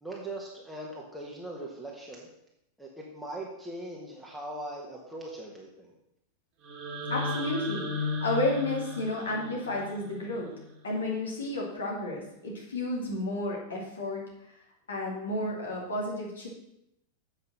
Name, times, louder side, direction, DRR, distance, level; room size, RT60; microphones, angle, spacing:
voice 1, 0.0-2.3 2.8-5.9, right 1 dB, 5° right, -3 dB, 1.5 m, -40 dB
sound 1, 6.6-10.7, left 3 dB, 35° right, 2.0 m, -35 dB
voice 2, 7.1-10.5 10.8-14.5 14.9-16.5, left 1 dB, 70° left, -2 dB, 2.5 m, -32 dB
7.9 x 5.6 x 6.5 m, 0.81 s
figure-of-eight pair, 90°, 0 cm